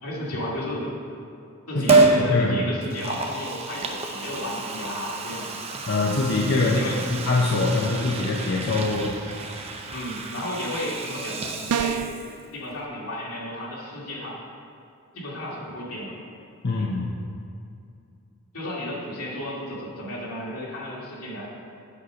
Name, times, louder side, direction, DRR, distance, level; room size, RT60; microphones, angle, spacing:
voice 1, 0.0-1.0 1.7-5.6 6.6-7.1 9.9-12.0 12.5-14.4 15.1-16.1 16.8-16.9 18.5-21.5, left 1 dB, 80° left, -5 dB, 2.3 m, -33 dB
voice 2, 1.7-2.6 5.9-6.8 7.1-9.1 16.6-17.1, left 3 dB, 50° left, -2 dB, 0.7 m, -24 dB
Liquid, 1.9-2.2 2.8-12.4 12.8-12.9, right 3 dB, 30° right, 0.6 m, -27 dB
sound 1, 11.7-12.2, right 8 dB, 80° right, 0.3 m, -26 dB
8.5 x 6.4 x 5.0 m, 2.5 s
head